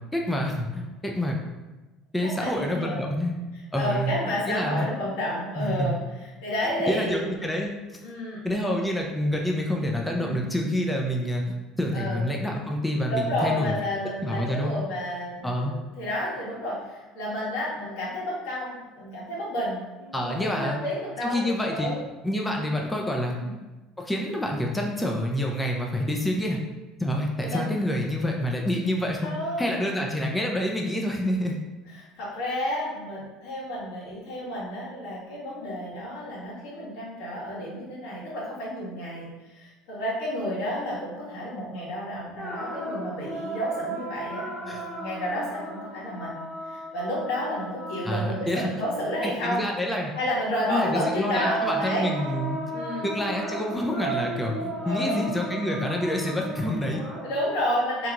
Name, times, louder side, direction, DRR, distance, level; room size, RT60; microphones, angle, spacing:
voice 1, 0.1-1.4 2.1-3.3 3.7-4.1 4.5-4.9 5.6-5.9 6.9-7.7 8.4-11.4 11.8-13.7 14.2-14.8 15.4-15.7 20.1-20.8 21.2-21.9 22.2-23.4 24.0-26.6 27.0-31.5 44.7-44.8 48.0-48.7 49.2-50.1 50.7-52.6 53.0-57.0, equal, 5° left, 0 dB, 0.4 m, -27 dB
voice 2, 2.2-3.0 3.7-5.9 6.4-7.2 8.0-8.4 10.2-10.4 11.9-12.2 13.1-22.0 23.3-23.5 27.4-27.7 29.2-29.6 31.9-49.6 50.2-52.1 52.7-53.1 54.8-55.3 57.2-58.1, equal, 80° left, -6 dB, 1.3 m, -31 dB
sound 1, 42.4-48.6 50.8-57.5, right 2 dB, 25° left, 0.9 m, -34 dB
2.9 x 2.3 x 3.7 m, 1.1 s
cardioid pair, 125°, 0 cm